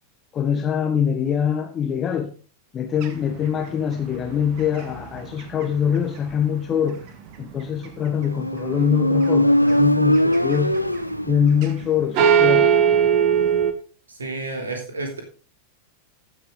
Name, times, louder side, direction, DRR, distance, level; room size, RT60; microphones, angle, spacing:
voice 1, 0.3-2.3 2.7-7.0 7.4-10.8 11.3-12.7, left 8 dB, 25° left, 1.3 m, -23 dB
sound 1, 3.0-7.1 7.4-8.2 8.7-9.3 9.6-11.9 12.1-13.7, right 8 dB, 45° right, 1.6 m, -21 dB
Motorcycle, 8.2-11.9, equal, 90° left, 0.4 m, -20 dB
voice 2, 14.2-15.2, right 2 dB, 75° right, 3.3 m, -30 dB
15.5 x 6.3 x 3.8 m
figure-of-eight pair, 90°, 0 cm